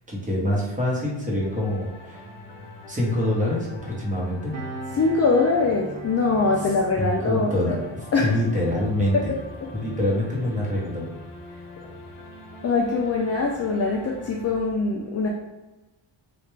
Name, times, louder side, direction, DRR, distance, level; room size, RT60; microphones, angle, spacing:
voice 1, 0.1-2.2 2.9-4.5 7.0-9.1 9.7-11.1, left 1 dB, 15° right, -4 dB, 1.0 m, -25 dB
sound 1, 1.4-14.6, left 2 dB, 90° left, 0.8 m, -42 dB
Piano, 4.5-11.6 11.8-12.1, right 2 dB, 35° right, 0.5 m, -43 dB
voice 2, 5.0-7.8 8.1-8.3 9.1-9.2 12.6-15.3, left 3 dB, 35° left, -1 dB, 0.4 m, -22 dB
3.3 x 2.4 x 3.1 m, 1.1 s
cardioid pair, 110°, 50 cm